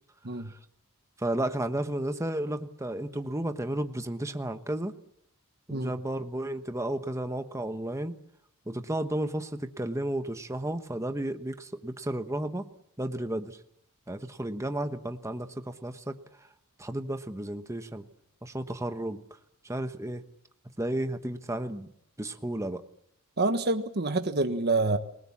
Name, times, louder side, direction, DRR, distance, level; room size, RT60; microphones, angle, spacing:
voice 1, 1.2-4.9 5.7-8.2 8.7-12.7 13.0-13.6 14.1-16.5 16.8-18.0 18.4-19.2 19.6-20.2 20.8-21.9 22.2-22.8, right 1 dB, 15° right, 8 dB, 1.2 m, -33 dB
voice 2, 23.4-25.0, right 3 dB, 50° right, 7 dB, 1.4 m, -27 dB
29.0 x 19.5 x 7.3 m, 0.71 s
head